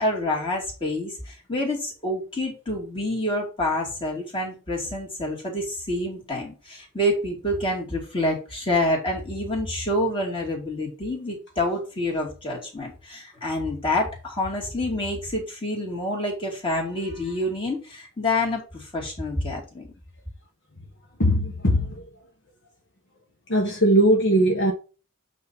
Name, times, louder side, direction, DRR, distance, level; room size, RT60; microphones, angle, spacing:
voice 1, 0.0-19.9, left 1 dB, 25° left, 2.5 m, -27 dB
voice 2, 21.2-22.1 23.5-24.7, right 1 dB, 55° left, 1.3 m, -20 dB
8.4 x 2.9 x 5.3 m
head